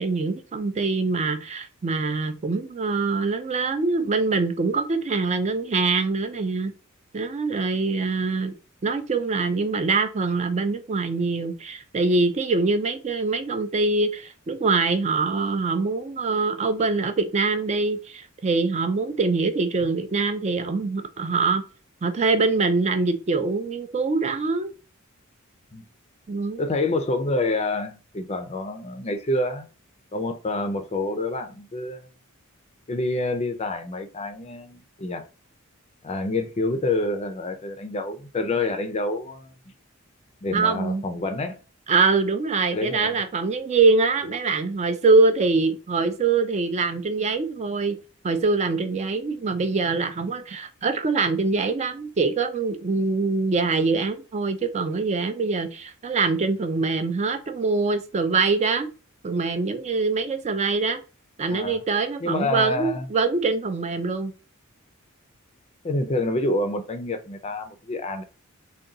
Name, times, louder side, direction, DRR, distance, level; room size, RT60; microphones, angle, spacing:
voice 1, 0.0-6.7 7.1-8.5 8.8-21.6 22.0-24.7 26.3-26.6 40.5-41.0 41.9-48.0 48.2-58.9 59.2-61.0 61.4-64.3, right 4 dB, 30° right, 0.4 m, -24 dB
voice 2, 26.6-29.7 30.1-32.1 32.9-35.2 36.0-39.5 40.4-41.6 42.7-43.2 61.5-61.8 62.2-63.1 65.8-68.2, left 2 dB, 30° left, 0.5 m, -27 dB
3.7 x 2.3 x 3.8 m
head